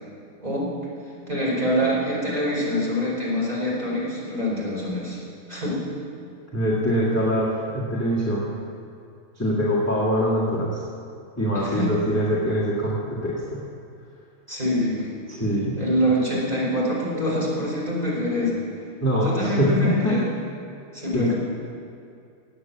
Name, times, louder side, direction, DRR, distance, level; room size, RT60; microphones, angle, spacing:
voice 1, 0.4-0.7 1.3-5.2 5.5-5.8 11.5-11.9 14.5-15.1 15.8-18.6 19.2-20.2 20.9-21.3, equal, 20° right, -6 dB, 4.5 m, -25 dB
voice 2, 6.5-8.5 9.4-10.8 11.4-13.7 15.3-15.8 19.0-20.2 21.1-21.3, equal, 10° left, -7 dB, 1.9 m, -23 dB
18.0 x 8.4 x 7.3 m, 2.5 s
omnidirectional pair, 2.2 m